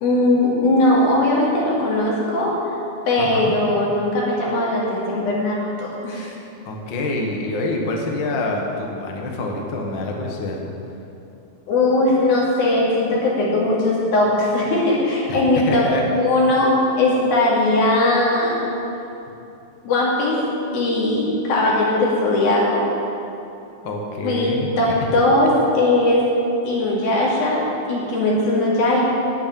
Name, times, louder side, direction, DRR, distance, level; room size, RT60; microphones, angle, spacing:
voice 1, 0.0-2.5 3.1-6.3 11.7-15.9 16.2-16.7 17.0-18.6 19.8-20.4 20.7-22.9 24.2-26.3 26.6-27.6 27.9-29.0, left 2 dB, 80° left, -5 dB, 4.3 m, -19 dB
voice 2, 3.2-3.5 6.6-10.6 15.3-16.1 23.8-25.0, left 2 dB, 60° left, 1 dB, 1.2 m, -26 dB
8.8 x 8.4 x 9.0 m, 2.8 s
omnidirectional pair, 4.2 m